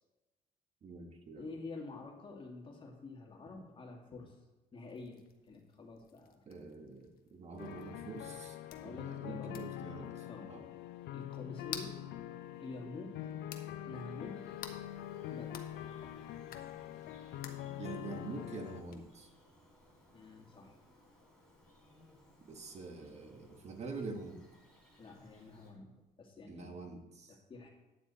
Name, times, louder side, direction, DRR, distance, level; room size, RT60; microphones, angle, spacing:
voice 1, 0.8-1.5 6.5-8.6 8.8-10.6 17.8-19.3 22.4-24.4 26.5-27.4, right 4 dB, 40° right, 4 dB, 1.6 m, -46 dB
voice 2, 1.4-4.4 4.7-6.5 8.8-9.6 10.3-10.5 11.1-12.0 12.5-13.3 13.9-14.5 15.3-15.7 20.1-20.7 25.0-26.9 27.3-27.7, left 3 dB, 30° left, 1 dB, 2.1 m, -48 dB
wet slapping, 4.9-21.3, left 8 dB, 60° left, 1.2 m, -54 dB
sound 1, 7.6-18.8, left 12 dB, 80° left, 0.7 m, -44 dB
Bird vocalization bird call bird song, 13.7-25.7, left 1 dB, 5° left, 3.9 m, -64 dB
9.9 x 8.9 x 4.2 m, 1.1 s
cardioid pair, 110°, 17 cm